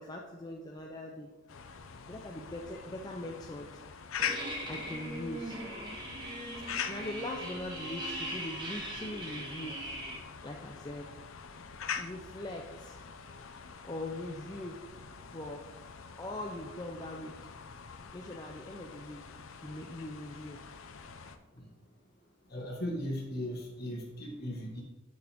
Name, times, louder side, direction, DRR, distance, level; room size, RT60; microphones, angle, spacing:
voice 1, 0.0-1.3 2.1-3.7 4.7-5.6 6.9-9.8 10.4-11.1 11.9-13.0 13.8-14.8 15.2-15.7 16.2-17.5 18.1-19.2 19.6-20.6, left 1 dB, 20° left, 0 dB, 0.6 m, -41 dB
sound 1, 1.5-21.4, left 7 dB, 85° left, 0.6 m, -44 dB
sound 2, 4.2-10.2, right 1 dB, 20° right, 1.5 m, -40 dB
voice 2, 22.5-24.8, equal, 50° left, -3 dB, 1.7 m, -37 dB
8.7 x 6.3 x 3.6 m, 1.1 s
head